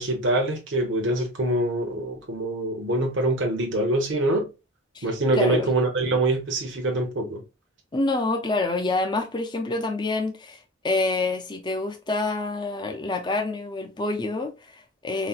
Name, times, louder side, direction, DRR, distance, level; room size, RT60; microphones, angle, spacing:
voice 1, 0.0-4.5 5.0-7.4, right 1 dB, 75° right, 0.8 m, -24 dB
voice 2, 5.3-5.7 7.9-15.3, left 2 dB, 25° left, 0.4 m, -27 dB
4.0 x 2.1 x 2.3 m
head